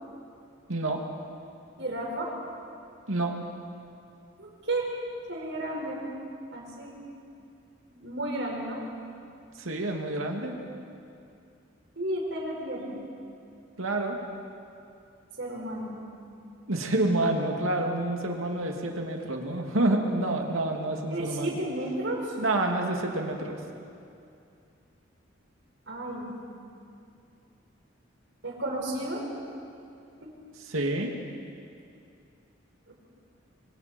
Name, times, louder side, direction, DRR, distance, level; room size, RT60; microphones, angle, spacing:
voice 1, 0.7-1.0 3.1-3.4 9.6-10.6 13.8-14.2 16.7-21.6 22.4-23.6 30.6-31.1, right 2 dB, 85° right, 2 dB, 2.4 m, -28 dB
voice 2, 1.8-2.3 4.4-4.9 5.3-6.0 6.5-7.0 7.9-8.8 12.0-13.0 15.4-16.0 21.1-22.4 25.9-26.3 28.4-29.2 30.2-30.3 32.9-33.0, right 1 dB, 60° right, -2 dB, 5.3 m, -33 dB
26.5 x 23.5 x 4.5 m, 2.5 s
head